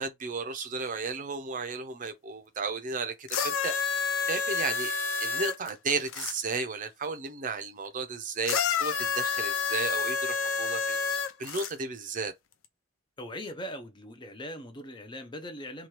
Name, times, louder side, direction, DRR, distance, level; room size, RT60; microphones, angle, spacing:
voice 1, 0.0-3.8 4.3-12.3, right 4 dB, 40° right, 0.5 m, -34 dB
sound 1, 3.3-6.3 8.4-11.7 12.6-12.7, left 6 dB, 85° left, 0.5 m, -29 dB
voice 2, 13.2-15.9, equal, 25° left, 0.5 m, -40 dB
2.9 x 2.3 x 3.1 m
head